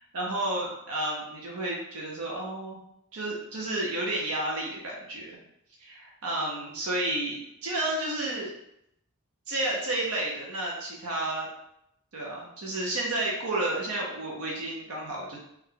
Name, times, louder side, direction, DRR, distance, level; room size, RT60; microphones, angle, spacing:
voice 1, 0.1-2.8 3.1-5.4 5.8-8.5 9.5-11.5 12.1-15.4, right 1 dB, 90° right, -3 dB, 0.8 m, -31 dB
3.1 x 2.3 x 3.6 m, 0.78 s
head